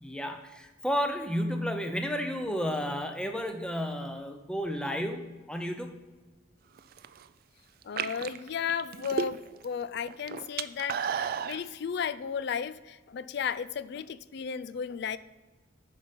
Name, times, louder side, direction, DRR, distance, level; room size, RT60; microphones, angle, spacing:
voice 1, 0.0-5.9, equal, 5° left, 6 dB, 0.6 m, -32 dB
sound 1, 6.8-7.2 7.8-9.7 10.0-11.6, right 7 dB, 45° right, 0.3 m, -33 dB
voice 2, 7.8-15.2, left 7 dB, 55° left, 15 dB, 0.3 m, -34 dB
9.8 x 5.1 x 5.2 m, 1.2 s
head